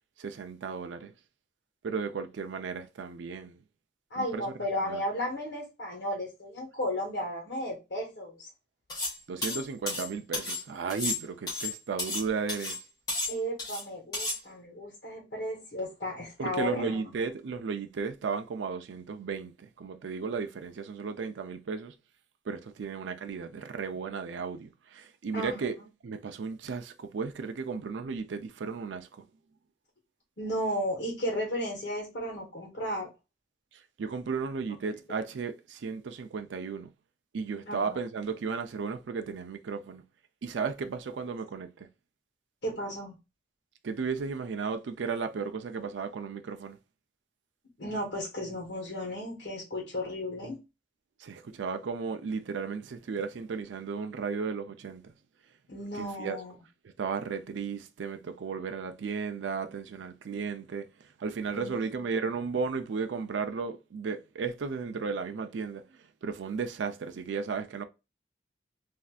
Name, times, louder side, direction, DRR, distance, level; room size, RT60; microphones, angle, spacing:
voice 1, 0.2-1.1 1.8-3.6 4.2-4.4 4.8-5.0 9.3-12.8 16.4-21.9 22.5-25.8 26.0-29.1 33.7-36.9 37.3-40.0 40.4-41.9 43.8-46.8 51.2-55.1 55.9-56.4 57.0-67.8, right 5 dB, 85° right, 0.4 m, -34 dB
voice 2, 4.1-8.5 13.3-17.0 25.3-25.7 30.4-33.1 37.7-38.0 42.6-43.2 47.8-50.6 55.7-56.6 61.5-61.8, equal, 60° left, 1.2 m, -34 dB
sound 1, 8.9-9.2 9.4-10.6 10.9-12.2 12.5-12.8 13.1-13.8 14.1-14.4, left 2 dB, 20° left, 1.5 m, -33 dB
3.2 x 2.6 x 2.3 m
head